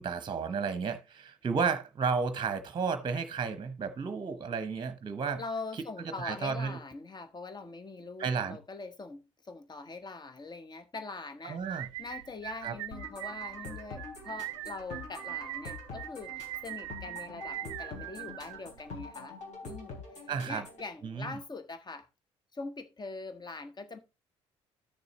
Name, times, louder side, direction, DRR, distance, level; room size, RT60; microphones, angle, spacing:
voice 1, 0.0-5.4 6.0-6.8 8.2-8.6 11.4-11.9 12.6-12.7 20.3-20.6 21.0-21.4, right 5 dB, 30° right, 1.0 m, -32 dB
voice 2, 5.4-19.4 19.6-22.1 22.5-24.0, left 3 dB, 25° left, 1.2 m, -43 dB
sound 1, 11.6-19.0, right 18 dB, 70° right, 0.5 m, -41 dB
sound 2, 12.9-20.9, left 3 dB, 50° left, 3.2 m, -45 dB
13.0 x 6.8 x 3.1 m
figure-of-eight pair, 50°, 16 cm